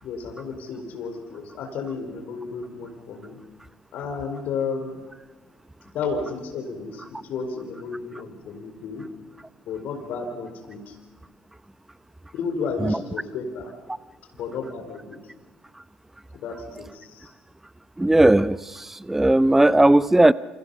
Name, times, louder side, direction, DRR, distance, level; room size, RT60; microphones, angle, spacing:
voice 1, 0.0-3.4 3.9-5.0 5.9-9.2 9.7-10.9 12.3-13.7 14.4-15.2 16.4-17.3, left 5 dB, 60° left, 4 dB, 4.6 m, -32 dB
voice 2, 18.0-20.3, right 1 dB, 10° right, 17 dB, 0.7 m, -17 dB
29.5 x 29.0 x 5.6 m, 1.3 s
hypercardioid pair, 55°, 3 cm